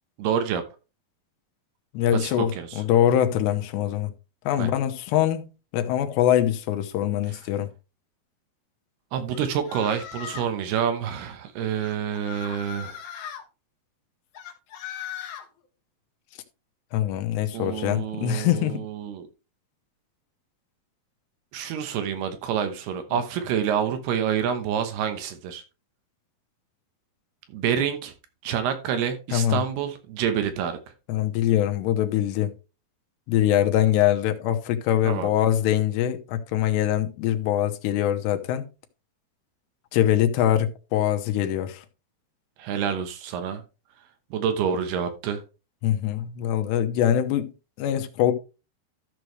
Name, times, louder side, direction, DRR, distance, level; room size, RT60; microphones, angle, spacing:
voice 1, 0.2-0.6 2.1-2.8 4.6-4.7 7.3-7.4 9.1-13.0 17.5-19.3 21.5-25.6 27.5-28.1 28.4-30.8 35.0-35.3 42.6-43.6 44.3-45.4, right 8 dB, 75° right, 3.0 m, -28 dB
voice 2, 1.9-4.1 4.5-7.7 16.9-18.8 29.3-29.6 31.1-32.5 33.3-38.6 39.9-41.8 45.8-47.5 47.8-48.3, left 11 dB, 90° left, 3.2 m, -23 dB
sound 1, 9.3-10.6 11.8-13.4 14.3-15.5, left 9 dB, 60° left, 2.3 m, -38 dB
13.5 x 6.3 x 3.2 m
omnidirectional pair, 4.8 m